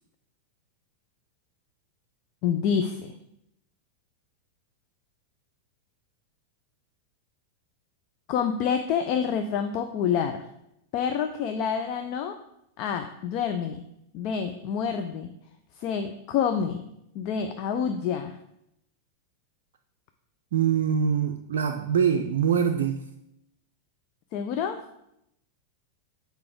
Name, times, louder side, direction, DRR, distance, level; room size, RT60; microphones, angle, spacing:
voice 1, 2.4-3.1 8.3-10.4 10.9-12.4 12.8-13.8 14.1-15.3 15.8-16.8 17.1-18.4 24.3-24.8, left 7 dB, 45° left, 7 dB, 0.5 m, -27 dB
voice 2, 20.5-23.0, right 7 dB, 60° right, 3 dB, 0.4 m, -24 dB
6.7 x 4.6 x 5.2 m, 0.81 s
figure-of-eight pair, 90°, 0 cm